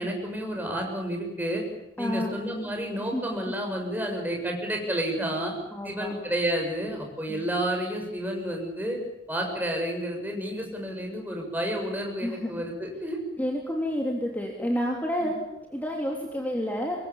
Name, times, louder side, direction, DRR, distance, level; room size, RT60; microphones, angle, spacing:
voice 1, 0.0-1.6 2.0-5.5 5.8-9.0 9.3-13.2 15.2-15.3, right 1 dB, 10° right, 2 dB, 6.9 m, -30 dB
voice 2, 2.0-2.4 3.1-3.5 5.7-6.1 7.3-7.4 12.2-12.6 13.4-17.1, equal, 10° left, -1 dB, 3.4 m, -30 dB
26.0 x 22.5 x 7.4 m, 0.90 s
head